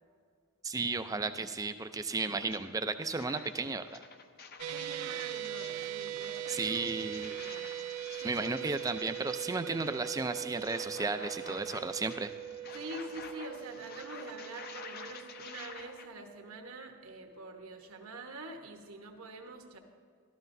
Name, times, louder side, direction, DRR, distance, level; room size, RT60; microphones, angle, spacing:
voice 1, 0.6-4.0 6.5-7.3 8.2-12.3, right 3 dB, 15° right, 9 dB, 0.4 m, -34 dB
sound 1, 2.5-2.6 3.0-16.1, left 5 dB, 45° left, 0.6 m, -49 dB
sound 2, 4.6-16.9, right 12 dB, 90° right, 0.3 m, -41 dB
voice 2, 4.7-7.7 8.2-8.8 12.7-19.8, right 2 dB, 70° right, 4 dB, 1.1 m, -46 dB
13.5 x 13.0 x 2.6 m, 2.1 s
head